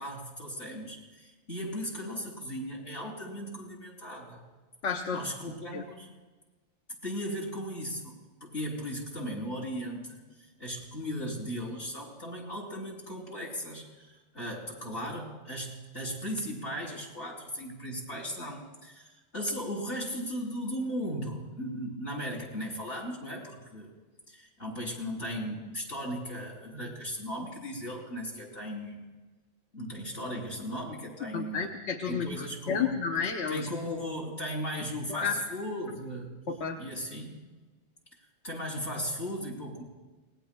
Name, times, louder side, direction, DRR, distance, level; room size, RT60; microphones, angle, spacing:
voice 1, 0.0-4.4 5.1-6.1 7.0-10.2 10.6-23.9 24.3-29.0 29.7-31.7 32.0-33.0 33.5-36.3 36.8-37.5 38.4-39.8, equal, 55° left, -2 dB, 4.0 m, -37 dB
voice 2, 4.8-5.2 5.7-5.8 31.3-33.7 35.1-35.3 36.5-36.8, left 6 dB, 70° left, 3 dB, 1.2 m, -31 dB
27.0 x 19.5 x 2.3 m, 1.2 s
omnidirectional pair, 1.2 m